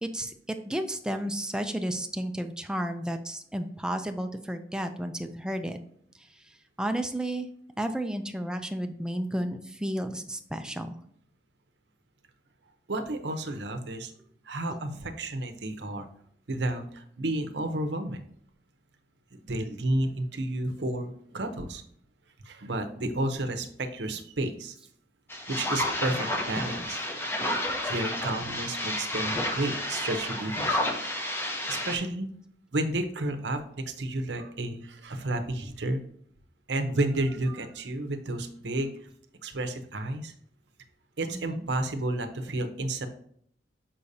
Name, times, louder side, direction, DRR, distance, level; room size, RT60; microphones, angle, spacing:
voice 1, 0.0-5.8 6.2-7.5 7.8-11.0 41.3-41.7, right 1 dB, 5° right, 6 dB, 0.5 m, -32 dB
voice 2, 12.9-14.1 14.4-16.1 16.5-18.2 19.3-21.8 22.4-24.8 25.5-27.0 27.8-30.8 31.7-32.3 32.7-36.0 36.7-39.1 39.4-40.3 41.2-43.1, right 1 dB, 65° right, 7 dB, 0.8 m, -31 dB
sound 1, 25.3-32.0, left 1 dB, 15° left, 0.8 m, -31 dB
6.6 x 5.6 x 2.7 m, 0.64 s
head